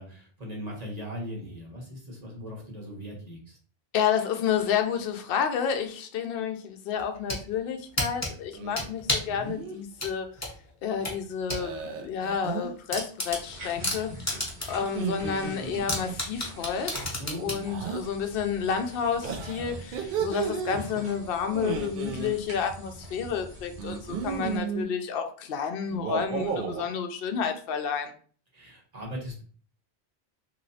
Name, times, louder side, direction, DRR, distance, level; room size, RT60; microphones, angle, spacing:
voice 1, 0.0-3.6 17.2-17.7 28.5-29.4, equal, 40° right, -1 dB, 1.0 m, -39 dB
voice 2, 3.9-10.3 10.8-14.3 14.7-28.1, left 7 dB, 65° left, 5 dB, 0.7 m, -30 dB
sound 1, 7.0-7.4 8.0-9.4 10.0-11.6 12.0-12.1 12.5-12.6 12.9-14.9 15.2-15.3 15.9-17.6, left 1 dB, 15° left, 0.8 m, -30 dB
sound 2, 8.5-8.9 9.3-9.8 11.5-12.7 14.8-16.2 17.6-18.0 19.2-20.8 21.5-22.3 23.8-24.9 25.9-26.9, right 6 dB, 65° right, 0.7 m, -33 dB
sound 3, 13.3-24.6, equal, 80° right, 1.3 m, -44 dB
3.0 x 2.9 x 2.7 m, 0.43 s
omnidirectional pair, 1.1 m